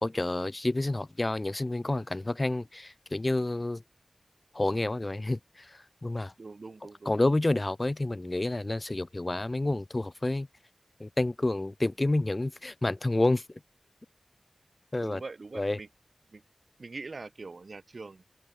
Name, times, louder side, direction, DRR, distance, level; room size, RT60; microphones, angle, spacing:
voice 1, 0.0-3.8 4.5-6.3 7.1-10.5 11.0-13.6 14.9-15.2 15.5-15.8, left 2 dB, 40° left, 0.5 m, -29 dB
voice 2, 6.4-7.1 15.0-15.9 16.3-16.4 16.8-18.3, right 3 dB, 75° right, 3.9 m, -43 dB
open air
wide cardioid pair, 45°, 0 cm